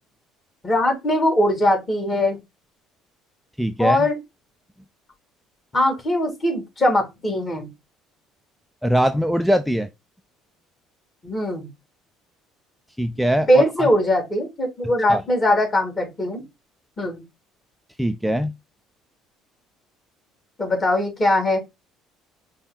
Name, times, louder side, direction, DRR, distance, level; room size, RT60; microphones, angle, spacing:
voice 1, 0.6-2.4 3.8-4.2 5.7-7.7 11.2-11.7 13.5-16.4 17.0-17.2 20.6-21.6, left 1 dB, 30° left, 2.4 m, -21 dB
voice 2, 3.6-4.1 8.8-9.9 13.0-13.6 15.1-15.2 18.0-18.5, equal, ahead, 0.4 m, -21 dB
5.3 x 2.3 x 4.1 m
hypercardioid pair, 60°, 0 cm